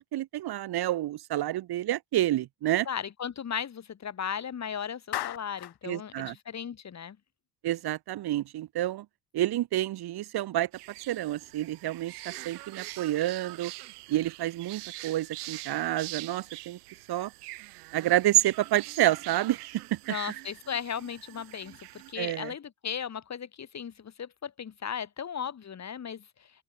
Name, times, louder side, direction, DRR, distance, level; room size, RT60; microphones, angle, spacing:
voice 1, 0.0-2.9 5.8-6.4 7.6-9.1 9.3-10.7 11.1-13.7 14.1-16.8 17.1-17.3 17.9-20.0 22.2-22.5, right 14 dB, 55° right, 1.7 m, -29 dB
voice 2, 2.9-7.2 20.1-21.8 22.1-26.2, left 8 dB, 35° left, 2.2 m, -36 dB
Clapping, 5.1-5.8, left 14 dB, 60° left, 2.2 m, -35 dB
sound 1, 10.7-22.1, right 19 dB, 90° right, 2.5 m, -44 dB
open air
hypercardioid pair, 70°, 45 cm